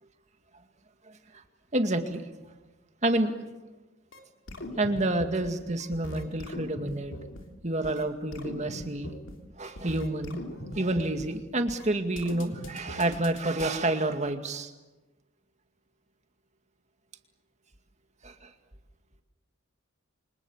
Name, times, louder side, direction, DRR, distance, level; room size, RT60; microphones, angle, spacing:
voice 1, 1.7-2.2 3.0-3.3 4.8-7.1 7.6-9.1 9.6-10.4 10.7-14.7 18.2-18.5, right 1 dB, 35° right, 6 dB, 2.2 m, -29 dB
sound 1, 4.1-4.2 4.5-5.5 5.8-7.4 7.8-8.0 8.3-9.3 9.6-11.3 11.7-11.9 12.2-13.7, left 1 dB, 75° left, 3.4 m, -41 dB
29.5 x 25.0 x 7.4 m, 1.1 s
head